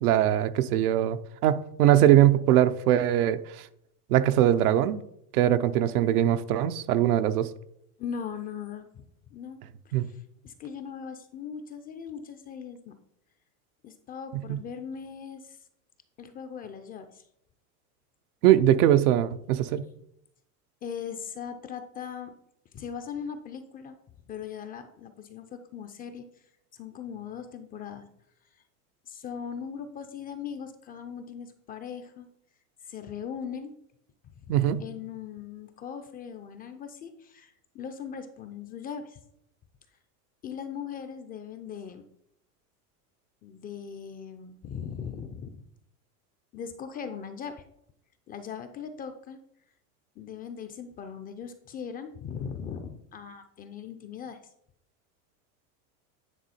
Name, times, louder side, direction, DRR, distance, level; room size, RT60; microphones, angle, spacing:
voice 1, 0.0-3.4 4.1-5.0 5.3-7.5 9.9-10.1 14.3-14.6 18.4-19.8 34.5-34.8, right 12 dB, 85° right, 0.7 m, -22 dB
voice 2, 8.0-9.0 9.3-13.0 13.8-15.6 16.2-17.2 19.7-19.8 20.8-22.3 22.7-24.0 24.3-26.2 26.7-28.1 29.1-32.3 32.9-33.7 34.4-39.2 40.4-42.1 43.4-45.6 46.5-47.6 48.3-49.4 50.2-54.4, left 7 dB, 20° left, 0.3 m, -39 dB
9.4 x 3.7 x 4.2 m
supercardioid pair, 120°, 44 cm